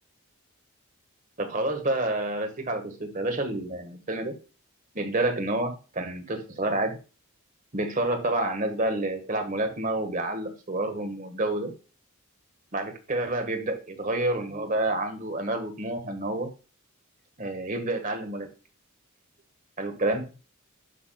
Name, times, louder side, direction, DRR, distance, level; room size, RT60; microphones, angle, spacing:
voice 1, 1.4-4.3 4.9-7.0 7.7-11.7 12.7-16.5 17.4-18.5 19.8-20.3, right 2 dB, 35° right, 6 dB, 1.7 m, -29 dB
11.0 x 6.0 x 2.4 m, 0.34 s
head